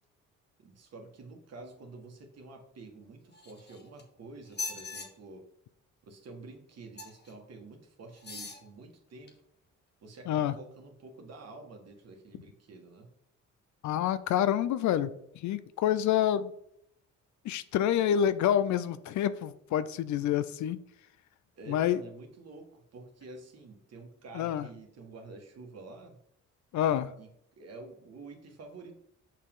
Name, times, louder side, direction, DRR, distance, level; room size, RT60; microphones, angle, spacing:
voice 1, 0.6-5.5 6.0-9.3 10.0-13.1 21.5-26.2 27.2-27.3 27.6-28.9, right 3 dB, 55° right, 3 dB, 1.8 m, -49 dB
sound 1, 3.3-4.0 4.5-5.1 7.0-7.3 8.2-8.6 9.3-9.4, left 4 dB, 35° left, 1.7 m, -40 dB
voice 2, 13.8-15.1 15.4-16.5 17.4-20.8 21.7-22.0 24.3-24.7 26.7-27.1, left 10 dB, 70° left, 14 dB, 0.6 m, -27 dB
6.7 x 5.1 x 3.7 m, 0.72 s
cardioid pair, 90°, 30 cm